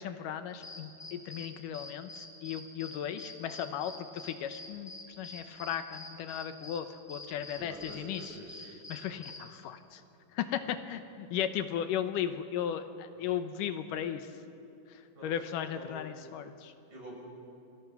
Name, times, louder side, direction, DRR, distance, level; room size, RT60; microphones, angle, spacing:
voice 1, 0.0-4.9 5.2-8.4 8.9-10.0 10.3-14.3 15.2-16.7, left 9 dB, 80° left, 9 dB, 2.5 m, -36 dB
sound 1, 0.6-9.4, left 2 dB, 5° left, 4.3 m, -46 dB
voice 2, 7.6-8.7 9.0-9.2 13.1-13.3 15.2-15.3 15.7-16.0 16.9-17.2, right 1 dB, 60° right, -3 dB, 8.5 m, -47 dB
30.0 x 24.0 x 6.0 m, 2.6 s
omnidirectional pair, 3.8 m